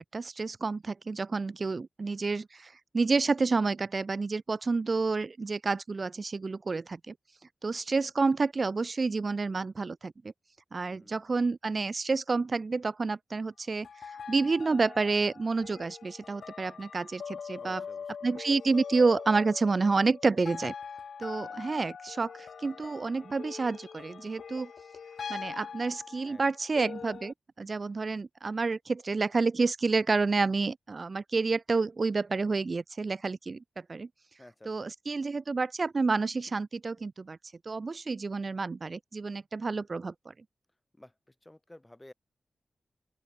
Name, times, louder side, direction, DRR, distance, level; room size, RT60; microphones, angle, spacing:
voice 1, 0.1-7.1 7.6-10.1 10.7-17.8 18.2-20.7 21.2-24.7 25.3-33.6 33.9-34.1 34.7-37.4 37.7-40.3, right 4 dB, 50° right, 0.3 m, -29 dB
voice 2, 10.9-11.3 17.6-18.1 26.2-26.5 34.4-34.8 40.9-42.1, left 1 dB, 15° left, 5.1 m, -53 dB
sound 1, 13.8-27.3, left 6 dB, 85° left, 1.0 m, -43 dB
open air
cardioid pair, 60°, 0 cm